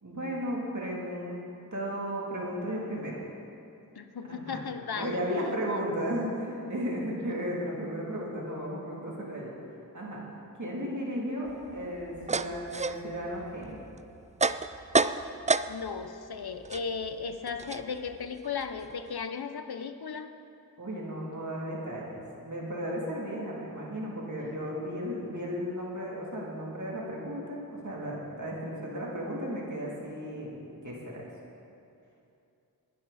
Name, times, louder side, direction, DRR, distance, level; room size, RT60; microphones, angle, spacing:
voice 1, 0.0-1.4 1.7-3.2 4.3-4.6 5.0-9.5 9.9-10.2 10.6-13.8 20.8-31.2, equal, 50° right, -4 dB, 3.0 m, -35 dB
voice 2, 3.9-5.2 5.7-5.8 15.7-20.3, left 5 dB, 90° left, 8 dB, 0.8 m, -36 dB
sound 1, 11.5-16.1 16.3-19.2, right 4 dB, 20° right, 0.3 m, -31 dB
20.0 x 11.5 x 4.2 m, 2.6 s
wide cardioid pair, 65°, 37 cm